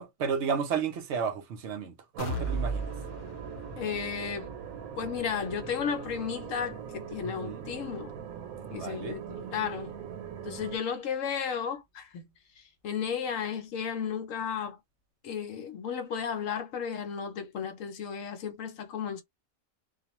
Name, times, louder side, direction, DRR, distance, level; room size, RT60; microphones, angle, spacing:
voice 1, 0.0-2.9 7.2-7.7 8.7-9.2, right 6 dB, 60° right, 0.9 m, -33 dB
sound 1, 2.1-10.8, right 8 dB, 85° right, 1.1 m, -41 dB
sound 2, 2.2-10.0 10.4-10.5 10.9-11.0, right 2 dB, 50° left, 0.5 m, -40 dB
voice 2, 3.8-4.5 5.0-8.1 8.7-9.9 10.4-12.2 12.6-14.8 15.2-19.2, left 7 dB, 70° left, 1.0 m, -34 dB
2.4 x 2.2 x 2.9 m
omnidirectional pair, 1.4 m